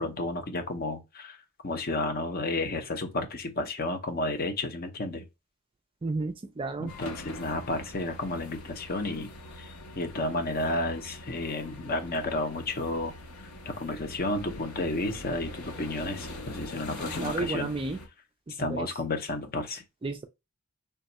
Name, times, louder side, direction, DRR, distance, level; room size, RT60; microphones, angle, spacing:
voice 1, 0.0-1.4 1.6-5.2 6.8-9.3 9.6-9.7 10.0-13.1 13.7-17.7 18.6-19.8, left 2 dB, 40° left, 0.6 m, -31 dB
voice 2, 6.0-6.9 17.2-18.0 18.5-18.9 20.0-20.3, right 3 dB, 25° right, 0.3 m, -32 dB
sound 1, 6.9-18.1, left 1 dB, 85° left, 1.0 m, -43 dB
3.4 x 2.3 x 4.0 m
head